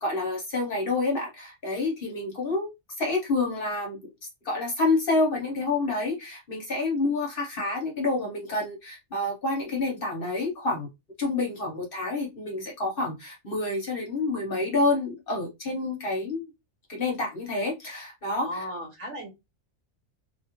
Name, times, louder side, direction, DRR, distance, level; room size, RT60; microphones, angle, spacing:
voice 1, 0.0-2.7 3.0-4.0 4.4-10.9 11.2-16.5 16.9-18.6, left 2 dB, 50° left, 0.9 m, -28 dB
voice 2, 18.3-19.3, equal, 60° right, 1.4 m, -36 dB
2.6 x 2.3 x 2.9 m
omnidirectional pair, 1.4 m